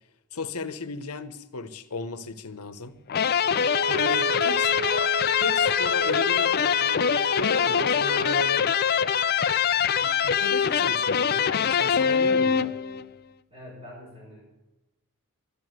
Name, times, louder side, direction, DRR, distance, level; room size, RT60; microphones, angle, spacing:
voice 1, 0.3-3.0 3.9-8.7 10.0-12.7, left 4 dB, 90° left, 1.0 m, -35 dB
sound 1, 3.1-13.1, left 7 dB, 45° left, 0.5 m, -23 dB
Bowed string instrument, 3.5-8.6, right 2 dB, 50° right, 0.8 m, -33 dB
voice 2, 13.5-14.4, left 1 dB, 25° right, 5.4 m, -45 dB
12.0 x 11.0 x 8.0 m
head